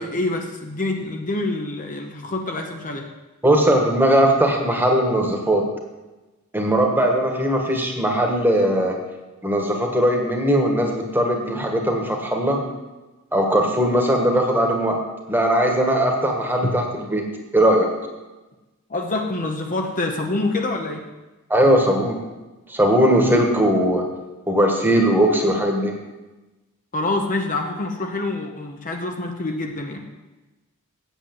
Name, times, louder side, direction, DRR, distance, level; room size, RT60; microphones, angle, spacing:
voice 1, 0.0-3.1 16.6-16.7 18.9-21.0 26.9-30.1, left 2 dB, 35° left, 3 dB, 0.9 m, -26 dB
voice 2, 3.4-5.6 6.5-9.0 9.4-12.6 13.3-15.0 15.3-17.2 17.5-17.9 21.5-22.2 22.7-24.0 24.5-25.9, right 1 dB, 10° right, 2 dB, 1.5 m, -19 dB
8.2 x 7.9 x 7.8 m, 1.1 s
head